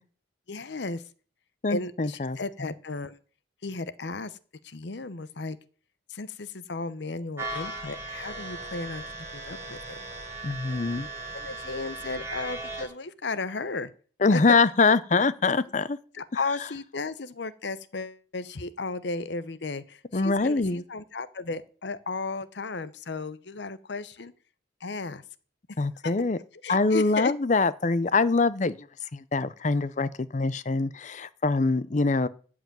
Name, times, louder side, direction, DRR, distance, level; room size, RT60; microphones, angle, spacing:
voice 1, 0.5-1.0 1.7-3.2 3.6-4.4 4.6-5.6 6.1-9.0 9.3-10.0 11.3-13.9 14.3-14.4 16.1-24.3 24.8-25.2 26.0-26.1 26.6-27.3, left 3 dB, 70° left, 0.8 m, -34 dB
voice 2, 1.6-2.4 10.4-11.1 14.2-16.0 20.1-20.8 25.8-26.4 26.7-28.9 29.1-32.3, left 3 dB, 40° left, 0.6 m, -24 dB
sound 1, 7.4-12.8, right 2 dB, 15° right, 4.1 m, -37 dB
13.5 x 4.9 x 9.1 m
head